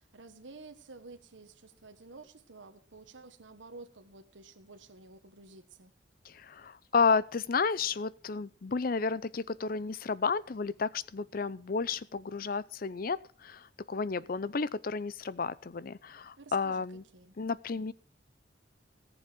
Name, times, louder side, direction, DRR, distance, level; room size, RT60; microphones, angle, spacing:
voice 1, 0.0-5.9 16.4-17.4, right 3 dB, 85° right, 8 dB, 1.2 m, -51 dB
voice 2, 6.3-17.0 17.4-17.9, left 4 dB, 50° left, 19 dB, 0.5 m, -32 dB
18.0 x 7.1 x 6.0 m, 0.42 s
head